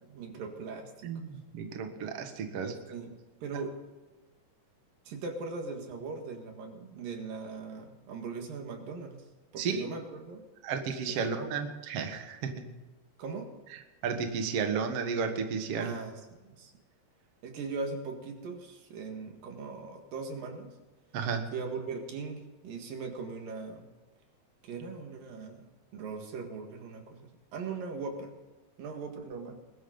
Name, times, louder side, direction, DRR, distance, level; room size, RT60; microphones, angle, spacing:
voice 1, 0.0-1.2 2.6-3.8 5.1-9.2 9.5-10.5 11.1-11.5 13.2-13.6 15.8-16.7 17.4-20.8 21.5-23.9 24.6-28.3 28.8-29.6, right 4 dB, 85° right, 4 dB, 3.6 m, -40 dB
voice 2, 1.0-2.7 9.6-9.9 10.6-12.7 14.0-15.9 21.1-21.5, right 5 dB, 50° right, 5 dB, 2.3 m, -33 dB
21.0 x 12.5 x 4.0 m, 1.2 s
omnidirectional pair, 3.8 m